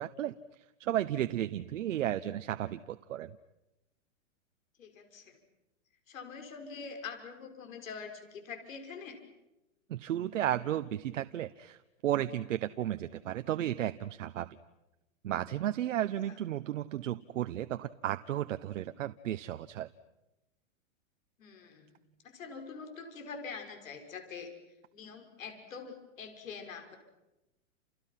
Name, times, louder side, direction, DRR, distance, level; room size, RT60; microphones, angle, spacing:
voice 1, 0.0-3.4 9.9-14.5 15.2-19.9, right 12 dB, 70° right, 10 dB, 1.1 m, -34 dB
voice 2, 4.8-5.4 6.1-9.2 21.4-24.5 24.9-27.0, left 5 dB, 80° left, 4 dB, 6.1 m, -45 dB
30.0 x 29.5 x 5.9 m, 0.97 s
hypercardioid pair, 160°, 39 cm